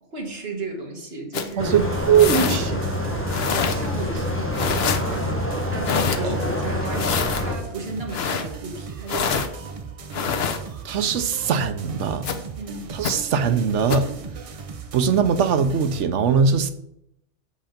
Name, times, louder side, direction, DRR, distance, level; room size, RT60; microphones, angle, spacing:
voice 1, 0.0-1.8 3.7-4.4 5.7-9.8 12.6-12.9, right 2 dB, 60° right, 1.9 m, -34 dB
sound 1, 1.3-1.5 2.2-2.6 3.3-3.8 4.5-5.0 5.8-6.2 6.9-7.4 8.1-8.4 9.1-9.5 10.1-10.6 12.2-12.4 13.0-13.1 13.9-14.1, left 6 dB, 65° left, 1.0 m, -25 dB
sound 2, 1.6-7.5, left 1 dB, 10° left, 1.2 m, -26 dB
voice 2, 1.6-2.9 6.2-6.4 10.8-12.3 12.9-14.1 14.9-16.7, right 6 dB, 90° right, 1.1 m, -21 dB
sound 3, 1.7-16.0, right 5 dB, 35° right, 0.6 m, -37 dB
7.6 x 5.3 x 5.1 m
omnidirectional pair, 1.2 m